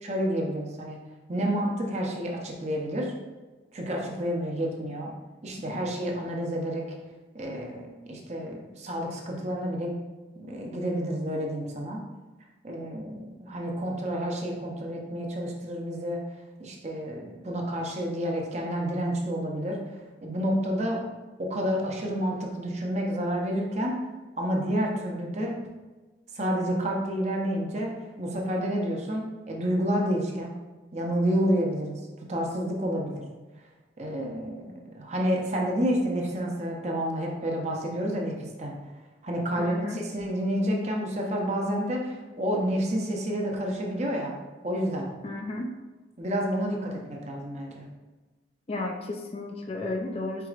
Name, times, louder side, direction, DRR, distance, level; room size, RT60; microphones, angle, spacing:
voice 1, 0.0-1.0 1.3-3.1 3.7-5.1 5.4-6.9 7.3-10.0 10.4-12.0 12.6-16.2 16.6-19.8 20.2-21.0 21.4-23.9 24.4-25.6 26.3-30.6 30.9-33.2 34.0-38.7 39.2-44.3 44.6-45.1 46.2-47.9, equal, 35° right, 0 dB, 0.6 m, -29 dB
voice 2, 39.6-40.0 45.2-45.7 48.7-50.5, left 2 dB, 30° left, 2 dB, 0.4 m, -33 dB
4.6 x 4.0 x 2.4 m, 1.3 s
head